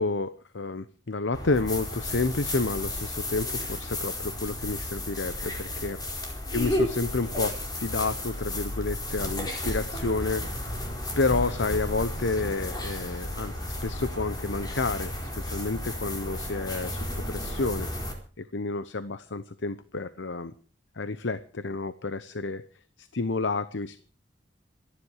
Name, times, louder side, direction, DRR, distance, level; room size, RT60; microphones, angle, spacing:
voice 1, 0.0-10.8 11.2-17.9 18.4-20.5 21.0-22.6 23.0-24.0, left 3 dB, 75° left, 13 dB, 0.9 m, -30 dB
sound 1, 1.3-18.1, left 1 dB, 20° left, 4.5 m, -33 dB
26.0 x 10.5 x 4.8 m, 0.39 s
head